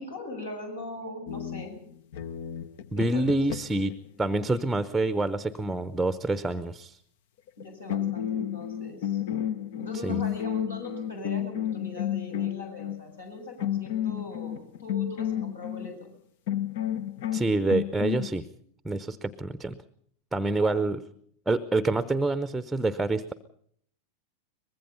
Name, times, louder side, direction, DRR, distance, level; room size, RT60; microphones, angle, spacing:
voice 1, 0.0-1.8 3.0-3.3 4.5-4.6 7.6-9.2 9.8-16.2 20.6-20.9, left 1 dB, 70° left, 4 dB, 7.0 m, -40 dB
sound 1, 1.3-3.9 7.5-7.6 7.9-13.0 13.6-15.9 16.5-18.3, left 10 dB, 50° left, 1.0 m, -31 dB
voice 2, 2.9-7.0 10.0-10.2 17.3-18.5 18.8-19.8 20.3-21.0 21.5-23.3, right 2 dB, 5° right, 14 dB, 0.9 m, -27 dB
24.0 x 21.0 x 5.5 m, 0.64 s
figure-of-eight pair, 90°, 0 cm